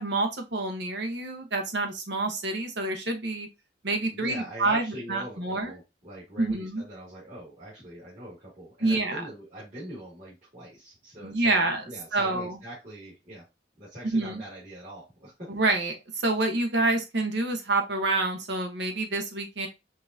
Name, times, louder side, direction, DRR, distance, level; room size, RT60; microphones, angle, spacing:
voice 1, 0.0-3.5 3.8-5.7 6.4-6.8 8.8-9.2 11.2-11.8 12.1-12.6 14.0-14.4 15.5-19.7, right 2 dB, 70° right, 4 dB, 1.0 m, -27 dB
voice 2, 4.1-13.5 13.8-15.6, right 1 dB, 40° right, -10 dB, 2.1 m, -43 dB
5.3 x 2.6 x 2.6 m, 0.23 s
head